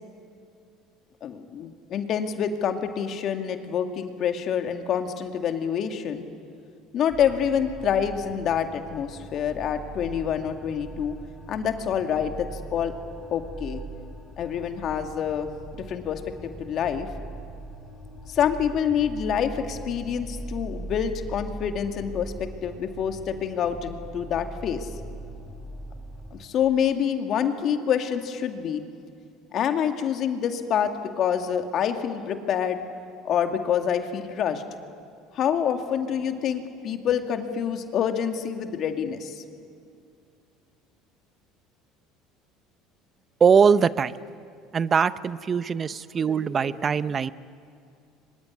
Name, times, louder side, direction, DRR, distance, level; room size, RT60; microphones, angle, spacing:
voice 1, 1.2-6.3 6.9-11.2 11.5-12.9 13.3-13.8 14.4-17.1 18.3-24.9 26.3-28.8 29.5-32.8 33.2-34.6 35.3-39.4, left 8 dB, 55° left, 6 dB, 2.2 m, -27 dB
sound 1, 7.1-26.5, right 1 dB, 5° left, 6.6 m, -40 dB
voice 2, 43.4-44.2 44.7-47.3, right 6 dB, 35° right, 16 dB, 0.8 m, -21 dB
24.0 x 21.5 x 10.0 m, 2.4 s
supercardioid pair, 85°, 0 cm